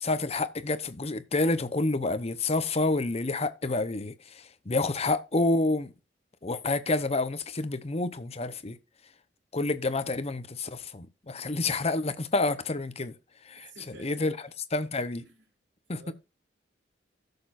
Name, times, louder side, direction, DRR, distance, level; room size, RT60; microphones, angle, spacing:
voice 1, 0.0-4.1 4.7-5.9 6.4-8.8 9.5-13.1 13.5-13.7 14.0-14.3 14.7-15.2 15.9-16.1, left 2 dB, 35° left, 0.9 m, -28 dB
voice 2, 13.6-14.3 15.2-15.5 15.9-16.1, right 1 dB, 80° right, 3.3 m, -50 dB
16.0 x 6.8 x 2.6 m
head